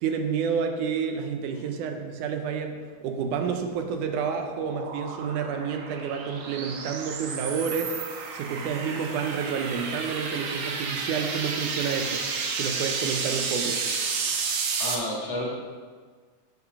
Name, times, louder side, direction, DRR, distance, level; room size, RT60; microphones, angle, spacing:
voice 1, 0.0-12.2 12.6-13.8, right 6 dB, 85° right, 5 dB, 2.3 m, -29 dB
sound 1, 3.5-14.9, right 5 dB, 65° right, 1.3 m, -32 dB
voice 2, 14.8-15.5, left 1 dB, 55° left, -3 dB, 2.5 m, -31 dB
8.3 x 7.0 x 4.8 m, 1.5 s
omnidirectional pair, 3.5 m